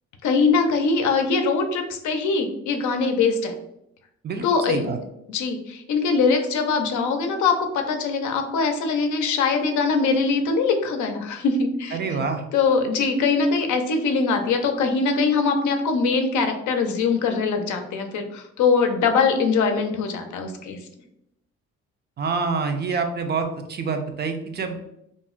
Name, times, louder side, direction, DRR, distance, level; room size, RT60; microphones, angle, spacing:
voice 1, 0.2-3.5 4.4-4.8 5.3-12.0 12.5-20.8, left 4 dB, 75° left, 5 dB, 0.6 m, -22 dB
voice 2, 4.2-5.0 11.9-12.4 22.2-24.8, right 4 dB, 35° right, 6 dB, 0.4 m, -26 dB
2.5 x 2.0 x 3.6 m, 0.80 s
cardioid pair, 90°, 30 cm